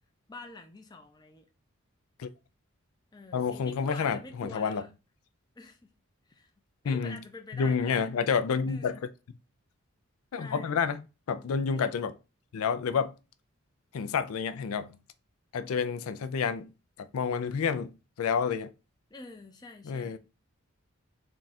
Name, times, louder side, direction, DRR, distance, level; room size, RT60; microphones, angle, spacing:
voice 1, 0.3-1.4 3.1-4.9 5.6-5.8 6.3-6.5 6.8-8.1 8.7-9.0 10.3-10.8 11.7-11.9 19.1-20.2, left 3 dB, 20° left, 0.4 m, -46 dB
voice 2, 3.3-4.8 6.8-7.2 7.5-9.0 10.3-11.0 11.3-12.1 12.5-13.1 13.9-14.9 15.5-16.7 17.0-18.7 19.9-20.2, left 6 dB, 80° left, 0.4 m, -29 dB
3.7 x 2.3 x 4.0 m
head